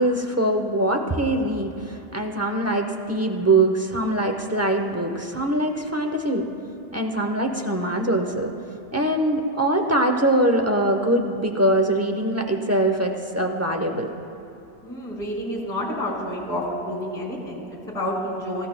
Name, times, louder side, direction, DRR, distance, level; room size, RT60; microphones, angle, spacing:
voice 1, 0.0-6.5 6.9-8.5 8.9-14.1, right 1 dB, 15° right, 3 dB, 0.6 m, -23 dB
voice 2, 14.8-18.7, equal, 35° left, -1 dB, 2.0 m, -29 dB
18.5 x 15.0 x 2.2 m, 2.6 s
omnidirectional pair, 1.3 m